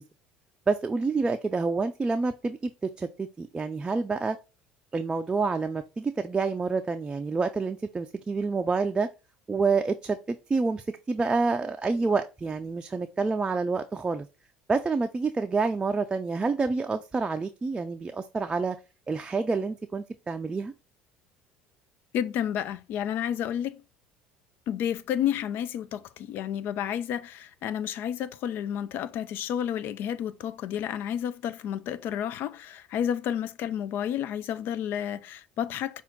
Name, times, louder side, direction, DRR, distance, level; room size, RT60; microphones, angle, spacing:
voice 1, 0.7-2.7 3.0-4.4 4.9-9.1 9.5-14.3 14.7-18.8 19.1-20.7, right 4 dB, 20° right, 0.4 m, -28 dB
voice 2, 22.1-23.8 24.7-36.0, left 9 dB, 55° left, 0.4 m, -31 dB
5.6 x 2.5 x 3.7 m
hypercardioid pair, 65°, 4 cm